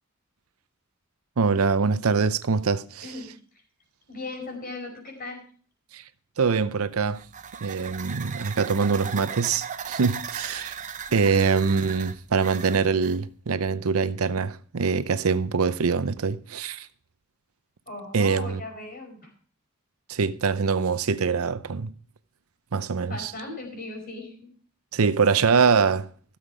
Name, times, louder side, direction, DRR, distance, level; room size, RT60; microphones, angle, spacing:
voice 1, 1.4-3.1 5.9-6.0 6.4-7.2 7.6-10.8 11.1-16.9 18.1-18.6 20.1-21.9 22.7-23.3 24.9-26.1, right 5 dB, 85° right, 0.6 m, -24 dB
voice 2, 4.1-5.4 11.1-11.4 17.9-19.3 23.1-24.5, left 2 dB, 45° left, 4.9 m, -38 dB
sound 1, 6.9-13.2, right 7 dB, 35° right, 0.7 m, -37 dB
15.5 x 7.3 x 4.8 m
head